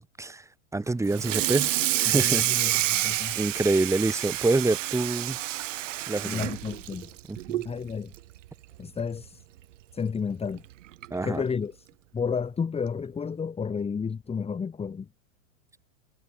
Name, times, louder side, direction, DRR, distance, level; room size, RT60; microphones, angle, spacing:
voice 1, 0.7-2.4 3.4-5.4 6.1-6.5 7.3-7.6 11.1-11.4, right 2 dB, 10° right, 6.3 m, -26 dB
Water tap faucet / Sink (filling or washing), 1.1-7.7 8.1-8.4 8.7-8.8 9.2-9.3 10.5-10.6 11.0-11.2, right 14 dB, 75° right, 3.4 m, -28 dB
voice 2, 2.1-3.4 6.2-7.1 7.6-8.1 8.8-9.4 9.9-10.6 11.2-11.9 12.1-15.1, left 6 dB, 15° left, 2.7 m, -31 dB
supercardioid pair, 125°, 38 cm